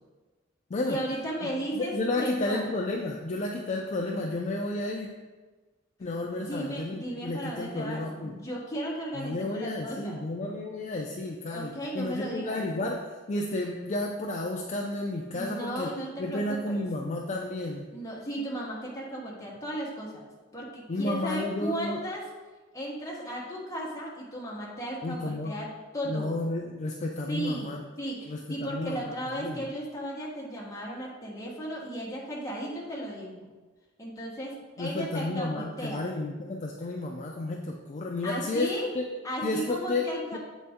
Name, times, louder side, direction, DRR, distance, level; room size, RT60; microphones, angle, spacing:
voice 1, 0.8-2.7 6.3-10.2 11.5-12.7 15.3-16.8 17.9-20.3 20.5-22.3 22.7-25.7 25.9-26.4 27.3-27.7 28.0-33.5 34.0-36.1 38.2-38.9 39.2-40.4, right 1 dB, 15° left, -4 dB, 1.2 m, -35 dB
voice 2, 1.4-5.1 6.0-8.3 9.1-15.9 16.2-17.9 20.9-22.0 25.0-25.5 26.0-27.8 28.3-29.6 34.8-39.0 39.4-40.4, left 2 dB, 40° left, 0 dB, 0.4 m, -32 dB
7.6 x 4.1 x 3.5 m, 1.3 s
head